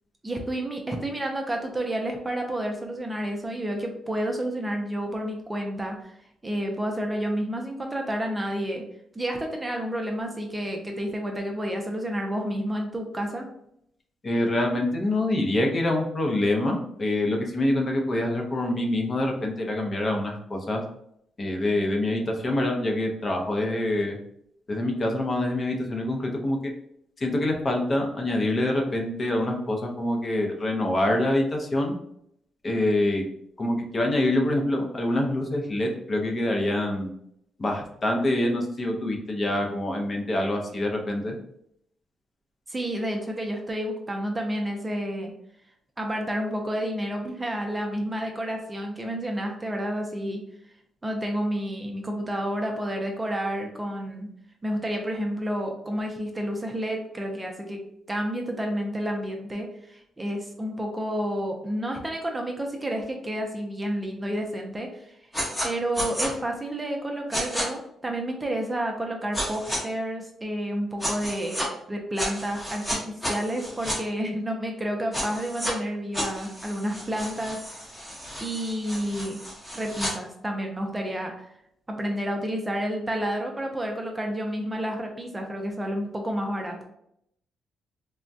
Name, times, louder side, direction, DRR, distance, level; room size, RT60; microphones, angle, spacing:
voice 1, 0.2-6.1 6.4-8.8 9.1-13.5 42.7-45.3 46.0-50.4 51.0-54.3 54.6-57.8 58.1-65.1 65.6-71.6 71.9-77.6 78.4-79.4 79.7-81.5 81.9-86.8, equal, 15° right, 2 dB, 0.5 m, -30 dB
voice 2, 14.2-20.8 21.4-24.2 24.7-26.7 27.2-31.9 32.6-33.2 33.6-37.1 37.6-41.4, left 1 dB, 35° left, 2 dB, 0.6 m, -25 dB
sound 1, 65.3-65.7 65.9-66.3 67.3-67.6 69.3-69.8 71.0-71.7 72.2-74.0 75.1-75.7 76.1-80.1, equal, 10° left, 0.9 m, -32 dB
3.4 x 2.1 x 2.6 m, 0.73 s
cardioid pair, 105°, 0 cm